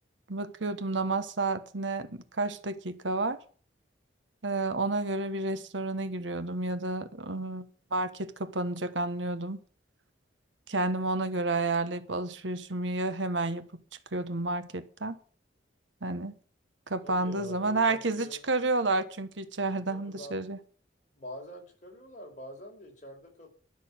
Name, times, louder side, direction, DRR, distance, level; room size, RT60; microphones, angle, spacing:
voice 1, 0.3-3.4 4.4-7.7 7.9-9.6 10.7-13.7 14.1-15.2 16.0-16.3 16.9-20.6, right 2 dB, 85° right, 1.3 m, -30 dB
voice 2, 17.0-18.4 19.9-20.6 21.1-23.5, left 1 dB, 40° left, 4.9 m, -45 dB
12.5 x 6.8 x 8.8 m
head